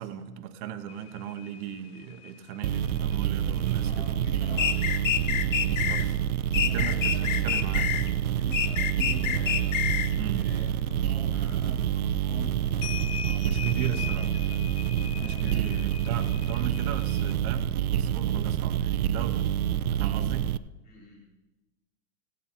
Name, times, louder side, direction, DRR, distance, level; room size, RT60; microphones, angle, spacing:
voice 1, 0.0-4.1 5.6-6.2 6.7-7.9 10.2-10.5 13.4-14.3 15.2-19.5 19.9-20.5, right 9 dB, 30° right, 8 dB, 0.8 m, -37 dB
sound 1, 0.9-7.4 7.8-9.5 9.9-11.2 11.8-11.9 12.3-17.3, left 8 dB, 45° left, 0.5 m, -43 dB
sound 2, 2.6-20.6, right 10 dB, 85° right, 0.6 m, -27 dB
voice 2, 3.8-4.9 5.3-5.7 6.6-8.0 8.4-9.7 10.1-13.4 13.8-14.5 15.1-15.6 19.9-20.3 20.8-21.2, left 2 dB, 20° left, -6 dB, 4.2 m, -46 dB
sound 3, 4.6-6.0 6.5-8.1 8.5-10.1, left 9 dB, 65° left, 0.9 m, -27 dB
16.0 x 8.9 x 4.3 m, 1.1 s
hypercardioid pair, 130°, 42 cm